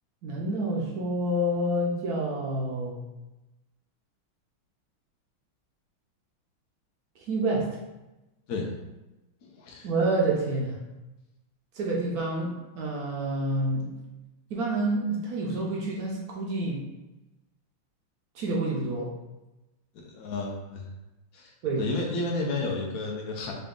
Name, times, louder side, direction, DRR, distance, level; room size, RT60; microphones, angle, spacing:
voice 1, 0.2-3.0 7.3-7.8 9.8-10.8 11.7-13.9 14.5-16.8 18.3-19.1 21.6-21.8, right 1 dB, 70° right, -3 dB, 0.8 m, -28 dB
voice 2, 9.4-9.9 20.1-20.9 21.3-21.5 21.8-23.5, left 3 dB, 70° left, -1 dB, 0.8 m, -31 dB
3.9 x 2.3 x 3.6 m, 1.0 s
omnidirectional pair, 2.3 m